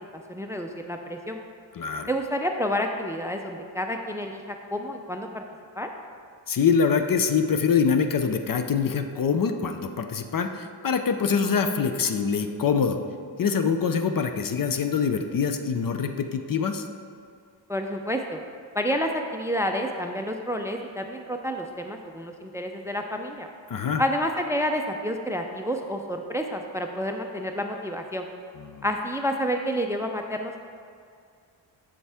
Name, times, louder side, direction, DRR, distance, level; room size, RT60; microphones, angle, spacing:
voice 1, 0.1-1.4 2.1-4.4 4.7-5.4 5.8-5.9 17.7-18.4 18.7-23.5 24.0-28.3 28.8-30.6, equal, 5° right, 4 dB, 0.4 m, -29 dB
voice 2, 1.7-2.1 6.5-13.0 13.4-16.8 23.7-24.0 28.6-28.8, left 6 dB, 45° left, 7 dB, 0.6 m, -24 dB
7.5 x 7.0 x 3.4 m, 2.2 s
cardioid pair, 70°, 46 cm